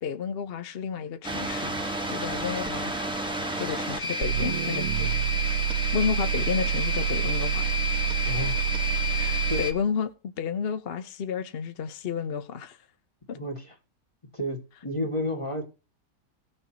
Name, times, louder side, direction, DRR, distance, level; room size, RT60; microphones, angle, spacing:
voice 1, 0.0-2.9 3.5-4.9 5.9-7.7 8.1-8.4 9.1-12.8 13.3-13.4, left 6 dB, 50° left, 0.8 m, -31 dB
sound 1, 1.2-9.7, left 1 dB, 5° right, 1.1 m, -30 dB
sound 2, 4.2-9.8, right 12 dB, 70° right, 1.1 m, -28 dB
voice 2, 8.2-8.6 9.5-9.7 13.3-13.7 14.3-15.7, left 1 dB, 20° left, 2.0 m, -31 dB
18.0 x 6.6 x 2.9 m
omnidirectional pair, 1.8 m